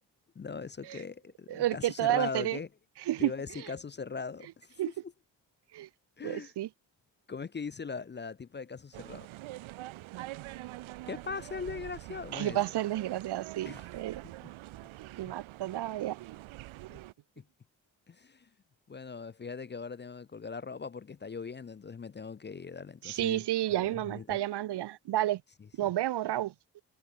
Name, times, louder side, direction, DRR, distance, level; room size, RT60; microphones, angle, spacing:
voice 1, 0.4-2.7 3.2-4.7 5.0-5.1 6.2-6.5 7.3-9.3 11.1-12.6 13.6-13.9 14.2-14.5 15.2-15.3 16.9-17.0 17.4-17.5 18.1-18.5 18.9-23.4 23.8-24.4, left 5 dB, 25° left, 0.6 m, -40 dB
voice 2, 1.5-2.6 3.1-3.7 4.8-4.9 5.7-5.9 6.2-6.7 12.3-14.2 15.2-16.2 23.0-25.4 25.8-26.5, right 14 dB, 60° right, 0.7 m, -31 dB
sound 1, 8.9-17.1, right 17 dB, 80° right, 2.3 m, -45 dB
hypercardioid pair, 45°, 47 cm